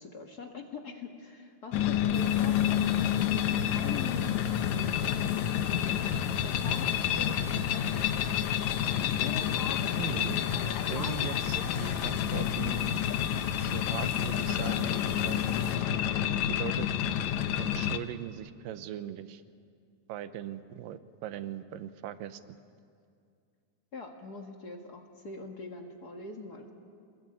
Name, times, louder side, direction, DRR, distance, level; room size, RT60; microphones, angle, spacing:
voice 1, 0.0-5.2 6.4-8.2 9.2-12.2 23.9-26.7, left 4 dB, 40° left, 3 dB, 1.4 m, -43 dB
sound 1, 1.7-18.0, left 10 dB, 75° left, 1.8 m, -29 dB
sound 2, 2.1-15.8, left 3 dB, 90° left, 5.7 m, -46 dB
voice 2, 10.0-10.4 10.9-13.0 13.6-15.6 16.5-16.9 17.6-19.4 20.1-22.4, right 11 dB, 80° right, 11 dB, 2.6 m, -40 dB
26.5 x 20.5 x 9.1 m, 2.3 s
omnidirectional pair, 4.0 m